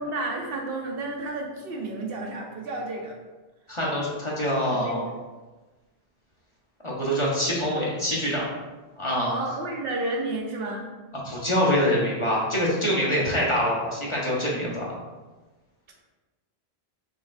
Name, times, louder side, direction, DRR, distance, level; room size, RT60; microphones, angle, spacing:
voice 1, 0.0-3.1 4.7-5.1 9.3-10.9, right 2 dB, 70° right, 0 dB, 0.8 m, -31 dB
voice 2, 3.7-5.0 6.8-8.5 9.0-9.4 11.2-15.0, equal, 30° left, -5 dB, 0.9 m, -25 dB
5.3 x 3.1 x 2.5 m, 1.2 s
omnidirectional pair, 1.0 m